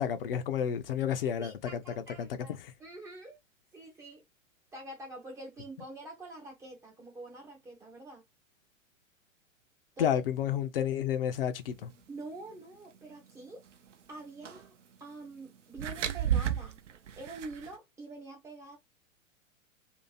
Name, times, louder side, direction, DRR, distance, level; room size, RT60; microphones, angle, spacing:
voice 1, 0.0-1.5 2.2-2.3 2.6-2.7 10.0-11.9, left 9 dB, 45° left, 0.6 m, -30 dB
voice 2, 1.2-3.4 3.7-4.2 4.7-8.2 10.0-10.2 12.1-13.6 14.1-14.7 15.0-16.8 17.2-18.8, right 2 dB, 10° right, 0.5 m, -46 dB
sound 1, 14.4-14.6 15.8-17.7, right 10 dB, 65° right, 0.6 m, -32 dB
2.8 x 2.5 x 4.0 m
figure-of-eight pair, 105°, 40 cm